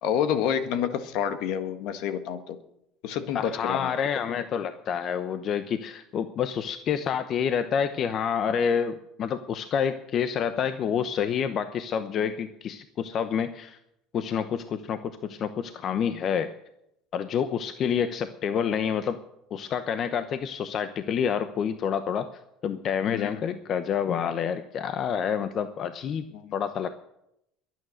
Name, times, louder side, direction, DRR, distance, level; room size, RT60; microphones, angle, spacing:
voice 1, 0.0-2.6 3.0-3.9 23.1-23.4 26.3-26.5, left 8 dB, 70° left, 10 dB, 1.6 m, -28 dB
voice 2, 3.3-13.8 14.1-16.5 17.1-19.2 19.5-22.3 22.6-26.2 26.5-26.9, left 7 dB, 45° left, 11 dB, 0.9 m, -28 dB
22.0 x 9.3 x 6.5 m, 0.82 s
supercardioid pair, 110°, 0 cm